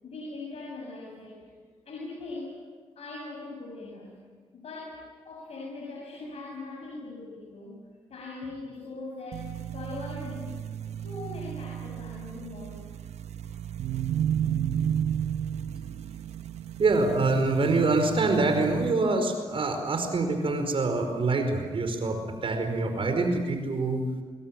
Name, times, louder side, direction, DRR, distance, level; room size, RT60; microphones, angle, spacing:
voice 1, 0.0-1.5 1.9-2.6 3.0-4.2 4.5-7.8 8.1-10.6 11.0-12.9, left 2 dB, 65° left, -3 dB, 7.4 m, -40 dB
sound 1, 9.3-18.9, right 9 dB, 75° right, 0.9 m, -33 dB
voice 2, 16.8-24.0, right 3 dB, 55° right, 6 dB, 4.9 m, -25 dB
27.0 x 22.0 x 9.1 m, 1.5 s
cardioid pair, 60°, 11 cm